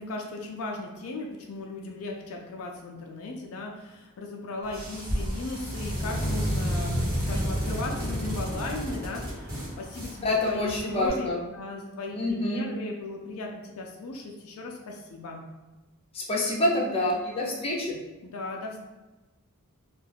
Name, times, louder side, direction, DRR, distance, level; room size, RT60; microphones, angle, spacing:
voice 1, 0.0-15.4 18.2-18.8, left 2 dB, 70° left, 0 dB, 0.4 m, -37 dB
sound 1, 4.6-11.1, equal, 45° right, 1.1 m, -31 dB
voice 2, 10.2-11.4 12.1-12.7 16.1-18.0, left 1 dB, 25° left, -3 dB, 0.6 m, -27 dB
2.4 x 2.3 x 3.3 m, 1.1 s
head